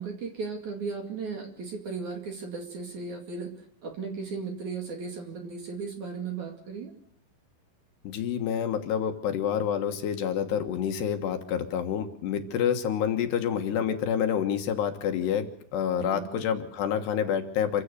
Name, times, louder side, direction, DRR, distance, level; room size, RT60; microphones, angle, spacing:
voice 1, 0.0-3.5 3.8-6.9 16.0-16.3, right 4 dB, 50° right, 4 dB, 3.1 m, -36 dB
voice 2, 8.0-17.8, left 8 dB, 70° left, 6 dB, 3.3 m, -28 dB
27.5 x 16.0 x 6.7 m, 0.71 s
omnidirectional pair, 5.4 m